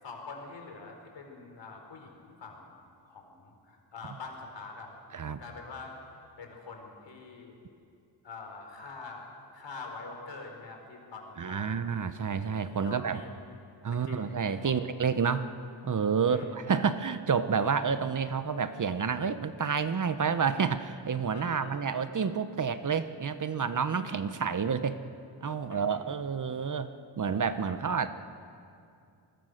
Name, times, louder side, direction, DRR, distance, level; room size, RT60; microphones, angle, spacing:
voice 1, 0.0-2.8 3.0-4.9 5.4-6.0 6.4-7.5 8.2-9.3 9.5-11.8 12.7-13.3 14.0-14.7 16.3-16.5 21.3-22.0 24.1-24.2 25.7-25.8 26.5-26.7 27.5-27.8, left 4 dB, 75° left, 2 dB, 4.2 m, -45 dB
voice 2, 11.4-13.2 13.8-15.5 15.8-25.0 25.4-26.9 27.2-28.1, right 6 dB, 45° right, 11 dB, 0.9 m, -29 dB
25.5 x 21.0 x 6.6 m, 2.5 s
wide cardioid pair, 130°, 44 cm